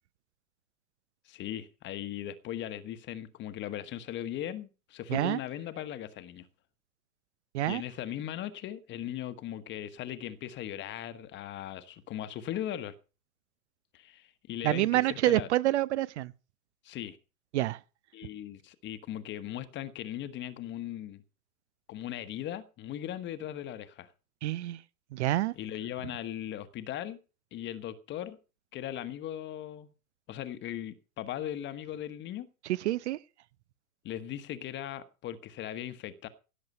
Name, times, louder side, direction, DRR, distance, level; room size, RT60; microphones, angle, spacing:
voice 1, 1.2-6.5 7.7-12.9 13.9-15.5 16.8-17.2 18.1-21.2 21.9-24.1 25.6-27.2 27.5-28.4 28.7-29.9 30.3-32.5 34.0-36.3, left 11 dB, 25° left, 1.2 m, -38 dB
voice 2, 14.6-16.3 17.5-17.8 24.4-24.8 25.1-25.5 32.6-33.2, right 15 dB, 50° right, 0.7 m, -27 dB
16.5 x 8.0 x 5.5 m
hypercardioid pair, 115°, 45 cm